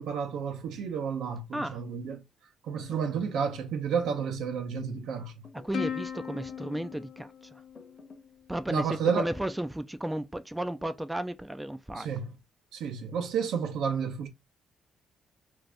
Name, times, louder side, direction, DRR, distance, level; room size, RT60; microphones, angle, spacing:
voice 1, 0.0-2.2 2.6-5.5 8.7-9.3 11.9-12.4 12.7-14.3, right 6 dB, 80° right, 0.7 m, -31 dB
sound 1, 2.7-3.7 4.1-4.6 5.4-6.0 6.4-7.4 7.7-8.3 9.1-9.7, left 3 dB, 30° left, 0.8 m, -50 dB
voice 2, 5.6-7.6 8.5-8.9 9.2-12.1, right 1 dB, 10° right, 0.3 m, -34 dB
Plucked string instrument, 5.7-8.5, left 8 dB, 70° left, 0.7 m, -38 dB
2.7 x 2.5 x 3.2 m
cardioid pair, 90°, 0 cm